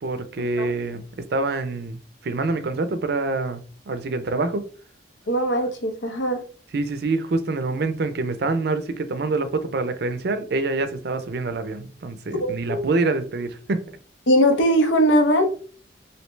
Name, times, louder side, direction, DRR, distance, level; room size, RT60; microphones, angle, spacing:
voice 1, 0.0-1.0 1.3-4.7 6.7-14.0, right 3 dB, 60° right, 0.4 m, -26 dB
voice 2, 5.3-6.4 12.4-12.9 14.3-15.5, equal, 85° left, 0.8 m, -20 dB
3.2 x 2.8 x 3.1 m
head